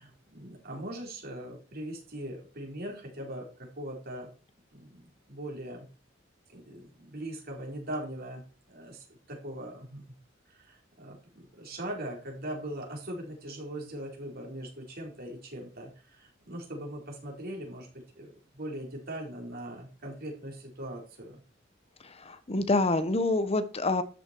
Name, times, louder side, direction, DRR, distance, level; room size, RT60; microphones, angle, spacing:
voice 1, 0.0-4.3 4.7-5.9 6.5-8.4 8.7-10.0 10.5-21.4, right 1 dB, 55° right, 0 dB, 4.5 m, -40 dB
voice 2, 22.0-24.0, left 2 dB, 30° left, 11 dB, 1.0 m, -27 dB
13.0 x 9.8 x 4.6 m, 0.37 s
head